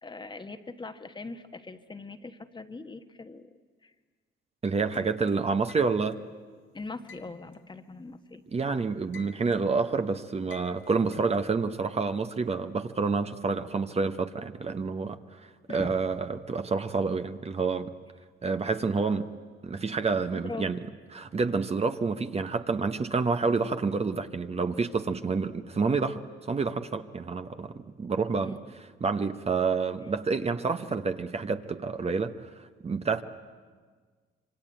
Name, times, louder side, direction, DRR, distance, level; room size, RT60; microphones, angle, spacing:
voice 1, 0.0-3.5 3.8-3.9 4.9-5.1 6.7-8.4 15.7-16.0 20.3-20.7 28.4-28.6, left 3 dB, 25° left, 8 dB, 1.3 m, -41 dB
voice 2, 4.6-6.2 8.5-15.4 15.7-17.9 18.4-19.3 19.6-20.8 21.1-28.6 29.0-33.2, right 4 dB, 30° right, 8 dB, 1.1 m, -28 dB
sound 1, 4.9-6.2 7.1-8.5 8.8-9.7 10.5-11.4, left 6 dB, 70° left, 1.8 m, -52 dB
26.5 x 24.0 x 9.0 m, 1.5 s
cardioid pair, 90°, 20 cm